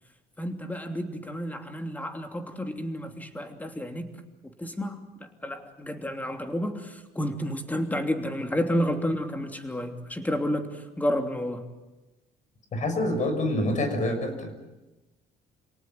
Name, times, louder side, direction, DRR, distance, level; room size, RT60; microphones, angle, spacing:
voice 1, 0.4-4.1 4.6-5.0 5.4-11.7, equal, 10° left, 5 dB, 3.0 m, -30 dB
voice 2, 12.7-14.5, left 1 dB, 45° left, 8 dB, 6.1 m, -27 dB
28.0 x 18.5 x 9.2 m, 1.1 s
cardioid pair, 110°, 17 cm